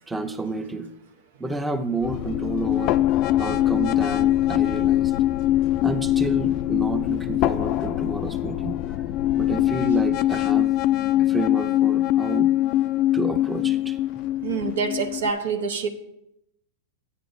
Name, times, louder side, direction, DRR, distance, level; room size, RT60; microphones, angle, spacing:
voice 1, 0.1-0.9 1.4-3.0 3.4-5.1 5.8-8.8 9.4-10.7 11.2-12.5 13.1-14.0, right 2 dB, 10° right, 0.6 m, -30 dB
sound 1, 2.0-15.3, left 14 dB, 45° left, 0.3 m, -23 dB
voice 2, 14.4-15.9, right 5 dB, 80° right, 1.0 m, -26 dB
11.0 x 9.1 x 2.7 m
hypercardioid pair, 125°, 0 cm